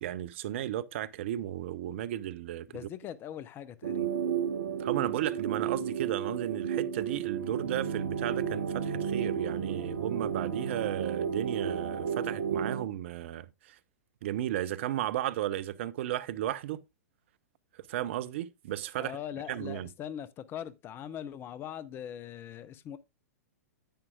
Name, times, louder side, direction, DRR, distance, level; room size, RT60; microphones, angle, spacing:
voice 1, 0.0-2.7 4.8-13.8 14.2-16.8 17.9-19.1 19.5-19.9, right 12 dB, 50° right, 0.6 m, -34 dB
voice 2, 2.7-4.1 19.0-23.0, left 10 dB, 25° left, 0.6 m, -41 dB
sound 1, 3.8-12.9, right 7 dB, 70° right, 1.1 m, -32 dB
10.0 x 8.8 x 2.3 m
figure-of-eight pair, 100°, 8 cm